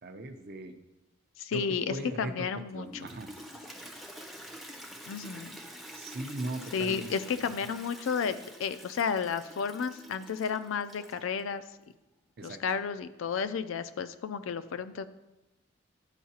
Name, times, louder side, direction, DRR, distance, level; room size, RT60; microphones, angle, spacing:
voice 1, 0.0-0.8 1.5-1.6 1.9-2.3 2.7-3.3 5.9-7.1 12.4-12.6, right 2 dB, 50° right, 7 dB, 0.6 m, -38 dB
voice 2, 1.4-3.1 5.1-5.5 6.7-11.6 12.4-15.1, left 6 dB, 75° left, 13 dB, 0.4 m, -32 dB
Toilet flush, 2.8-11.4, equal, ahead, 0.5 m, -47 dB
11.5 x 4.6 x 2.8 m, 1.0 s
head